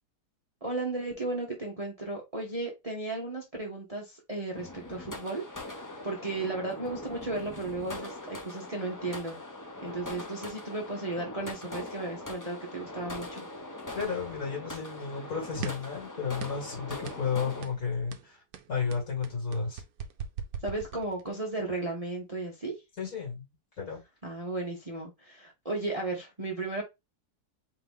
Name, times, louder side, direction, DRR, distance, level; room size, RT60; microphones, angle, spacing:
voice 1, 0.6-5.8 6.0-9.4 9.8-13.5 20.6-22.7 24.2-26.8, right 2 dB, 25° right, 1.0 m, -35 dB
sound 1, 4.5-17.7, left 2 dB, 20° left, 0.5 m, -42 dB
voice 2, 13.9-18.4 18.7-19.8 23.0-23.5 23.8-24.0, left 5 dB, 60° left, 3.0 m, -33 dB
sound 2, 15.6-16.0 16.4-16.7 17.0-17.3 17.6-17.8 18.1-21.4, right 8 dB, 70° right, 1.1 m, -40 dB
4.5 x 2.8 x 3.5 m
omnidirectional pair, 1.7 m